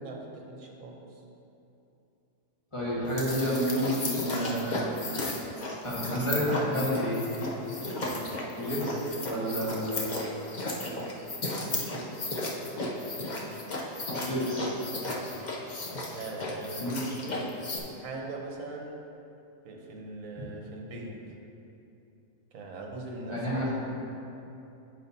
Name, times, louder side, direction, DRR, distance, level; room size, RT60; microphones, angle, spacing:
voice 1, 0.0-1.2 8.9-9.2 11.7-12.3 15.1-15.3 15.9-17.6 17.9-19.0 19.6-21.2 22.5-23.8, right 2 dB, 60° right, 0 dB, 1.3 m, -41 dB
voice 2, 2.7-5.0 5.8-7.5 8.6-10.0 14.1-14.7 16.8-17.1 23.3-23.7, equal, 20° left, -7 dB, 1.5 m, -30 dB
sound 1, 3.1-17.8, left 2 dB, 45° left, 0.6 m, -34 dB
9.0 x 7.7 x 2.8 m, 2.8 s
omnidirectional pair, 1.7 m